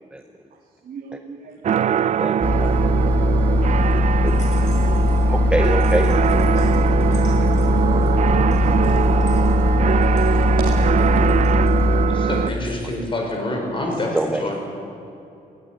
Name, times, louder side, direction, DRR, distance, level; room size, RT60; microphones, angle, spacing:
voice 1, 0.9-2.3 2.7-4.0 4.3-5.3 6.5-7.0 7.3-8.1 9.2-9.4 10.0-12.3, right 5 dB, 70° right, 0 dB, 2.2 m, -39 dB
sound 1, 1.6-12.5, right 8 dB, 50° right, 0.5 m, -22 dB
voice 2, 2.2-2.7 4.2-4.3 4.6-4.7 5.3-6.4 14.1-14.5, right 1 dB, 5° right, 7 dB, 0.8 m, -25 dB
Engine, 2.4-12.1, left 2 dB, 10° left, 2.1 m, -19 dB
sound 2, 4.3-5.3 5.6-10.4 10.7-11.8, left 2 dB, 55° left, 5.5 m, -37 dB
voice 3, 12.1-14.6, left 1 dB, 35° left, 1 dB, 5.7 m, -26 dB
18.5 x 17.5 x 9.0 m, 2.8 s
cardioid pair, 120°, 15 cm